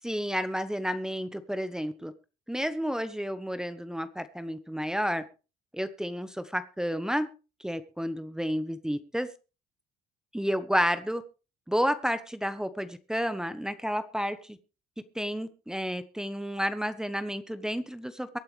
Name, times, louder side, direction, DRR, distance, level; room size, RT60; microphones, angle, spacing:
voice 1, 0.0-2.1 2.5-5.2 5.7-7.3 7.6-9.3 10.3-11.2 11.7-14.6 15.1-18.3, equal, 5° right, 11 dB, 1.1 m, -31 dB
23.5 x 8.8 x 3.4 m, 0.33 s
cardioid pair, 110°, 17 cm